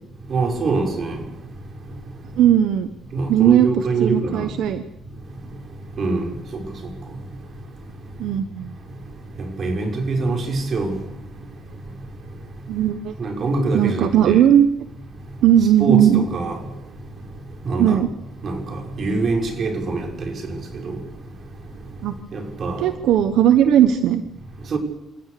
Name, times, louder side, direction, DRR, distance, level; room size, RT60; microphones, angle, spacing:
voice 1, 0.3-1.2 3.1-4.5 6.0-6.2 6.5-6.6 9.6-10.9 13.2-14.4 15.8-16.6 17.7-18.0 18.4-20.1 20.8-21.0 22.3-22.8 24.7-24.8, right 3 dB, 50° right, 6.2 m, -24 dB
voice 2, 2.4-2.9 3.3-4.8 8.2-8.7 12.7-13.1 13.7-14.7 15.4-16.2 17.8-18.1 22.0-22.1 22.8-24.2, right 10 dB, 85° right, 1.1 m, -17 dB
27.5 x 17.0 x 6.8 m
cardioid pair, 90°, 0 cm